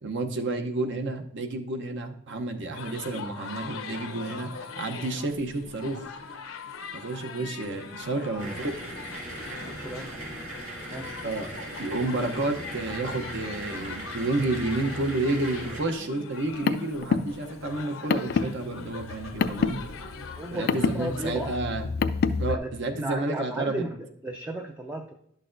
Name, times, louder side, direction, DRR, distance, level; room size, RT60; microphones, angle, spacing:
voice 1, 0.0-4.5 4.8-6.1 6.9-8.7 10.0-10.1 11.2-19.8 20.5-21.9 22.4-23.9, right 2 dB, 60° right, 5 dB, 0.8 m, -30 dB
sound 1, 2.8-21.6, left 4 dB, 75° left, 0.7 m, -42 dB
voice 2, 8.2-8.7 9.6-10.3 10.7-11.2 20.3-21.5 22.5-22.7 23.0-25.1, right 1 dB, 10° right, 3 dB, 0.4 m, -35 dB
sound 2, 8.4-15.8, right 1 dB, 80° right, 2.3 m, -38 dB
Car, 16.3-22.5, left 5 dB, 50° left, 0.4 m, -28 dB
11.0 x 6.5 x 2.6 m, 0.74 s
head